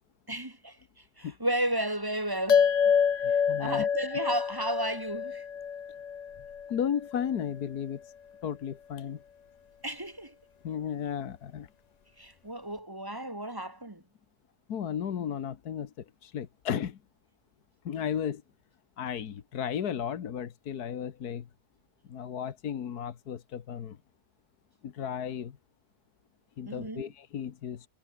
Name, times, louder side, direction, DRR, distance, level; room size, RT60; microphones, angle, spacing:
voice 1, 0.3-0.8 1.2-2.7 3.6-5.4 9.8-10.3 12.2-14.0 26.7-27.1, right 1 dB, 15° right, 2.1 m, -33 dB
sound 1, 2.5-7.2, left 7 dB, 60° left, 0.4 m, -27 dB
voice 2, 3.2-3.9 6.7-8.1 8.4-9.2 10.6-11.7 14.7-17.0 17.9-18.4 19.0-21.5 22.1-24.0 24.8-25.6 26.6-27.9, left 8 dB, 80° left, 1.8 m, -34 dB
omnidirectional pair, 1.7 m